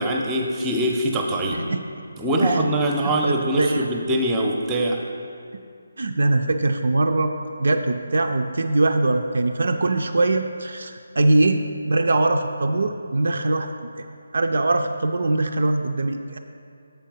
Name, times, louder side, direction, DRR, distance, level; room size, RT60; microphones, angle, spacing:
voice 1, 0.0-1.6 2.2-5.0, right 1 dB, 10° right, 1 dB, 0.6 m, -23 dB
voice 2, 3.0-3.9 6.0-7.3 7.6-14.1 14.3-16.4, right 2 dB, 55° right, 5 dB, 0.3 m, -22 dB
7.3 x 4.5 x 5.3 m, 2.4 s
figure-of-eight pair, 150°, 0 cm